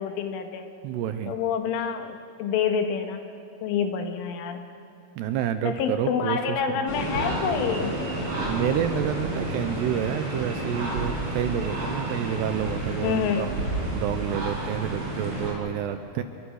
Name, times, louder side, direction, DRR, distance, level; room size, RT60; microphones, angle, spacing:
voice 1, 0.0-0.7 1.3-3.2 3.6-4.7 5.7-8.0 13.0-13.5, left 7 dB, 85° left, 6 dB, 4.2 m, -27 dB
voice 2, 0.8-1.4 5.2-6.4 8.5-13.5 13.9-16.2, right 10 dB, 75° right, 9 dB, 2.6 m, -29 dB
sound 1, 6.9-15.5, right 1 dB, 25° right, 6.0 m, -30 dB
29.0 x 22.5 x 6.5 m, 2.8 s
omnidirectional pair, 5.5 m